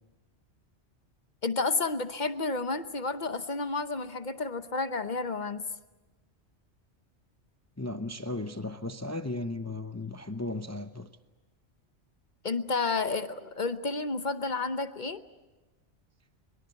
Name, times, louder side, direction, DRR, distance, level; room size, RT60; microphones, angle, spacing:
voice 1, 1.4-5.6 12.4-15.2, left 3 dB, 45° left, 1.1 m, -31 dB
voice 2, 7.8-11.1, left 2 dB, 15° left, 0.7 m, -35 dB
23.5 x 23.0 x 8.2 m
omnidirectional pair, 1.2 m